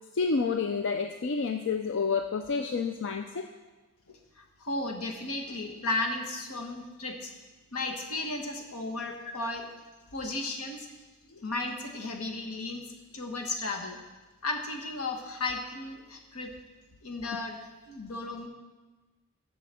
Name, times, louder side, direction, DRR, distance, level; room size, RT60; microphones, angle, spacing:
voice 1, 0.1-3.5 17.3-17.4, left 5 dB, 60° left, 6 dB, 0.5 m, -29 dB
voice 2, 4.1-7.3 7.7-9.6 10.1-10.9 11.4-14.0 14.4-16.5 17.0-17.6 17.9-18.5, left 2 dB, 80° left, 2 dB, 1.4 m, -34 dB
7.8 x 6.8 x 7.6 m, 1.2 s
head